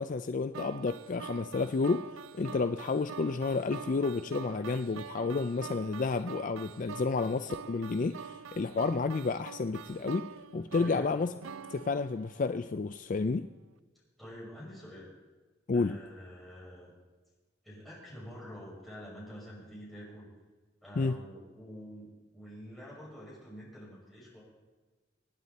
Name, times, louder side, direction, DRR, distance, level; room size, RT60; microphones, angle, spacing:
voice 1, 0.0-2.1 2.3-11.3 11.7-13.5 15.7-16.0 21.0-21.2, left 4 dB, 40° left, 9 dB, 0.4 m, -31 dB
sound 1, 0.5-12.7, right 6 dB, 90° right, 0.4 m, -45 dB
voice 2, 10.8-11.1 14.2-15.1 15.7-16.9 17.6-20.3 20.8-24.4, equal, ahead, -7 dB, 6.2 m, -47 dB
25.5 x 9.5 x 4.2 m, 1.3 s
head